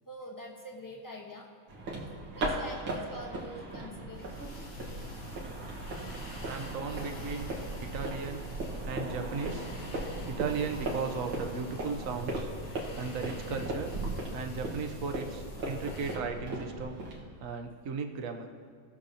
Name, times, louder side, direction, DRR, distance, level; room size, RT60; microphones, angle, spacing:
voice 1, 0.1-1.5 2.2-4.3, equal, 15° left, -1 dB, 0.8 m, -45 dB
sound 1, 1.7-17.2, right 2 dB, 90° right, 2.3 m, -38 dB
sound 2, 4.1-16.2, left 1 dB, 55° left, 1.6 m, -46 dB
voice 2, 6.4-7.5 7.8-8.5 8.8-9.7 10.3-12.5 12.9-13.9 14.3-17.0 17.4-18.5, right 5 dB, 60° right, 5 dB, 0.9 m, -36 dB
18.0 x 6.6 x 2.8 m, 2.1 s
omnidirectional pair, 2.1 m